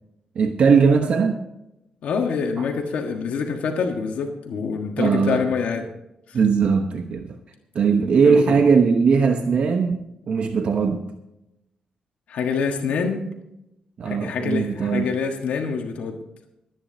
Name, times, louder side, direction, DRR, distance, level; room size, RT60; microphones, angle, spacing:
voice 1, 0.3-1.4 2.6-2.7 5.0-5.4 6.3-7.4 7.7-11.1 14.0-15.1, right 5 dB, 60° right, 1.0 m, -19 dB
voice 2, 2.0-5.9 6.3-6.4 8.2-8.6 12.3-13.3 14.0-16.2, left 5 dB, 85° left, 1.5 m, -26 dB
26.5 x 9.7 x 2.8 m
wide cardioid pair, 135°, 2 cm